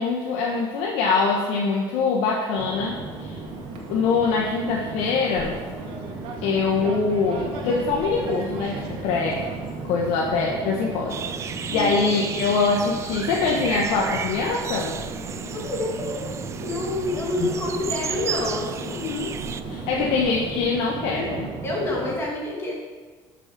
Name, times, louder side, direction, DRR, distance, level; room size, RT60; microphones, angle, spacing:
voice 1, 0.0-3.4 3.9-5.6 6.4-9.4 9.8-14.9 19.0-19.3 19.6-21.5, left 4 dB, 90° left, -2 dB, 1.6 m, -24 dB
sound 1, 2.5-22.2, right 3 dB, 80° right, 2.3 m, -35 dB
sound 2, 2.9-20.7, left 2 dB, 50° left, 2.9 m, -44 dB
sound 3, 11.1-19.6, right 8 dB, 30° right, 0.4 m, -34 dB
voice 2, 15.5-16.3 16.6-19.0 19.9-20.1 21.0-22.7, left 2 dB, 25° left, -3 dB, 2.4 m, -28 dB
13.0 x 6.8 x 6.2 m, 1.4 s
cardioid pair, 155°, 10 cm